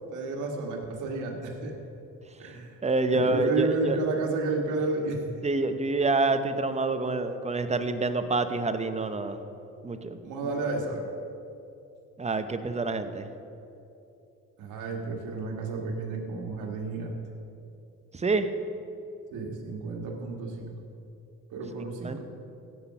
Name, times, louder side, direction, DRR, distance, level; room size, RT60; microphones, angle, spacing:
voice 1, 0.1-1.7 2.4-2.8 3.1-5.2 10.2-11.1 14.6-17.2 19.3-20.7 21.5-22.2, right 3 dB, 90° right, 1 dB, 1.7 m, -31 dB
voice 2, 2.5-4.0 5.4-9.4 9.8-10.2 12.2-13.3 18.1-18.5 22.0-22.2, right 3 dB, 20° right, 9 dB, 0.8 m, -27 dB
16.0 x 6.1 x 5.7 m, 2.7 s
cardioid pair, 90°, 30 cm